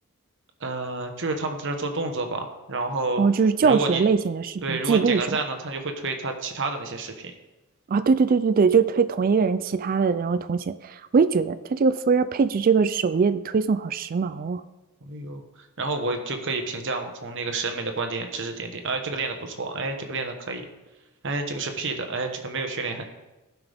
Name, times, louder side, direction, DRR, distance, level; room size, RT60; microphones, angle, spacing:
voice 1, 0.6-3.2 3.6-4.0 4.6-7.3 15.0-15.4 15.8-20.6 21.2-23.0, right 3 dB, 60° right, 5 dB, 1.3 m, -29 dB
voice 2, 3.2-5.4 7.9-14.6, right 5 dB, 40° right, 12 dB, 0.3 m, -22 dB
16.0 x 5.9 x 3.5 m, 1.0 s
head